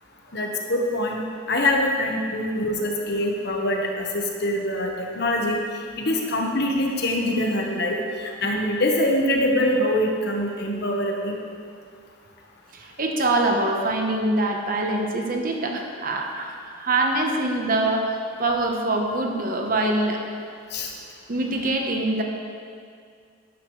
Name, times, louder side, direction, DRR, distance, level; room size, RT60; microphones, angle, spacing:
voice 1, 0.3-1.2 1.5-5.6 6.0-11.3 20.7-20.9, left 1 dB, 55° left, 1 dB, 1.2 m, -24 dB
voice 2, 12.7-20.2 21.3-22.2, right 2 dB, 45° right, 2 dB, 1.0 m, -24 dB
11.5 x 10.0 x 3.2 m, 2.2 s
head